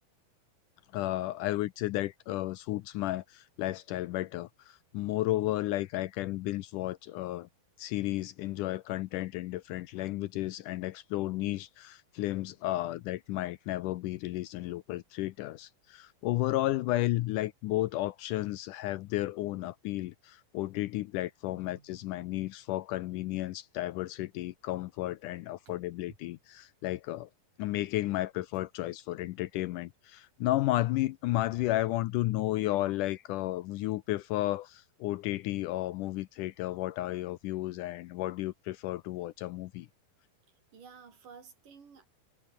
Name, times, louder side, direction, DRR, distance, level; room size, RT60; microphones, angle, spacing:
voice 1, 0.9-7.5 7.8-27.3 27.6-39.9, left 16 dB, 80° left, 2.0 m, -33 dB
voice 2, 21.5-21.9 25.7-25.8 26.1-26.2 40.5-42.1, right 6 dB, 65° right, 5.6 m, -53 dB
omnidirectional pair, 4.1 m